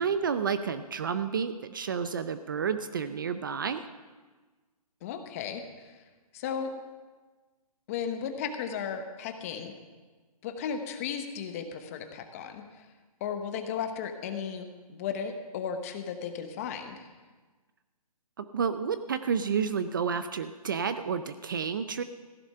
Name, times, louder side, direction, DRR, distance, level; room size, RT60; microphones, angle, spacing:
voice 1, 0.0-3.9 18.4-22.0, right 6 dB, 35° right, 11 dB, 0.4 m, -30 dB
voice 2, 5.0-6.0 6.3-6.7 7.9-9.7 10.4-12.8 13.2-17.1, left 7 dB, 25° left, 7 dB, 0.9 m, -35 dB
15.0 x 11.0 x 5.5 m, 1.3 s
hypercardioid pair, 160°, 20 cm